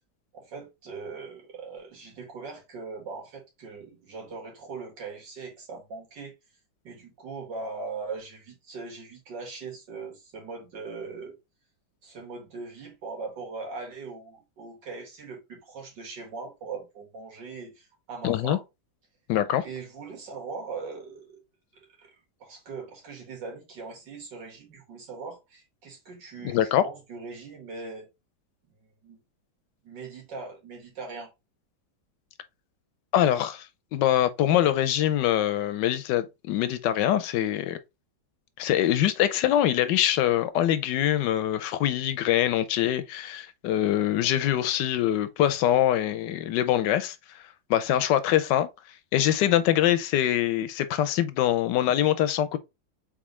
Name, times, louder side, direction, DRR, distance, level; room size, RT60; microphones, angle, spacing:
voice 1, 0.3-6.3 6.8-11.4 12.0-18.6 19.6-21.4 22.0-28.1 29.0-29.2 29.8-31.3, right 4 dB, 75° right, 2.3 m, -40 dB
voice 2, 18.2-18.6 19.3-19.6 26.4-26.8 33.1-33.7 33.9-37.8 38.6-47.2 47.7-48.7 49.1-52.6, left 12 dB, 80° left, 1.2 m, -24 dB
4.0 x 3.6 x 3.1 m
omnidirectional pair, 1.9 m